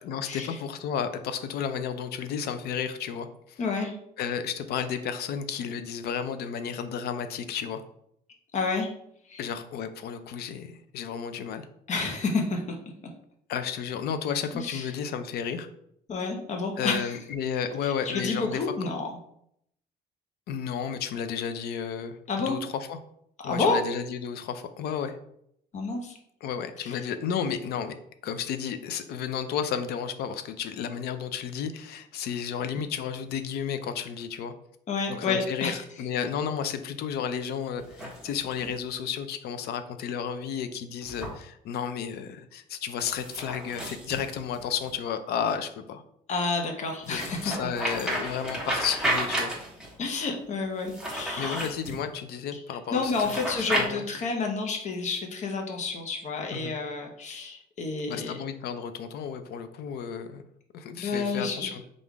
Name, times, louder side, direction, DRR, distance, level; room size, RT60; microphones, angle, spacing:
voice 1, 0.0-3.6 4.2-7.8 9.4-11.7 13.5-15.7 16.8-18.9 20.5-23.0 23.4-25.2 26.4-27.9 28.2-34.5 35.1-46.0 47.1-49.5 51.4-53.3 53.6-54.0 56.5-56.7 58.1-60.4 60.7-61.8, left 7 dB, 70° left, 10 dB, 0.5 m, -32 dB
voice 2, 3.6-4.0 8.5-8.9 9.3-9.4 11.9-12.6 14.5-14.9 16.1-17.1 17.8-19.2 22.3-22.6 23.4-23.8 25.7-26.2 26.8-27.0 34.9-35.8 46.3-47.7 50.0-51.7 52.5-58.4 61.0-61.7, left 4 dB, 45° left, 2 dB, 0.9 m, -30 dB
sound 1, 37.8-38.8 41.0-41.3 43.0-44.9 47.0-49.9 50.8-52.0 53.0-53.9, right 1 dB, 5° right, 1.2 m, -32 dB
3.6 x 2.5 x 4.6 m, 0.72 s
cardioid pair, 110°, 17 cm